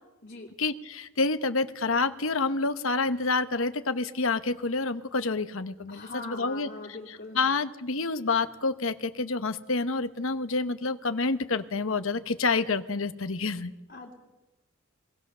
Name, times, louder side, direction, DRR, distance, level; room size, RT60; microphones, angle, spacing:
voice 1, 0.6-6.7 7.3-13.7, left 3 dB, 65° left, 11 dB, 1.0 m, -28 dB
voice 2, 5.9-7.4 13.9-14.1, left 2 dB, 40° left, -4 dB, 2.7 m, -41 dB
22.0 x 18.5 x 6.8 m, 1.1 s
head